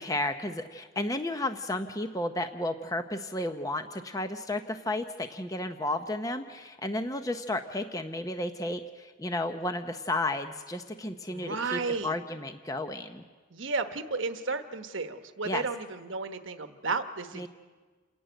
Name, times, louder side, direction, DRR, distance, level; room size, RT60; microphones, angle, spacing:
voice 1, 0.0-13.2 15.5-15.6 17.4-17.5, left 1 dB, 15° left, 7 dB, 0.7 m, -33 dB
voice 2, 11.3-12.2 13.5-17.5, right 4 dB, 65° right, 7 dB, 1.2 m, -33 dB
28.5 x 11.5 x 9.1 m, 1.4 s
head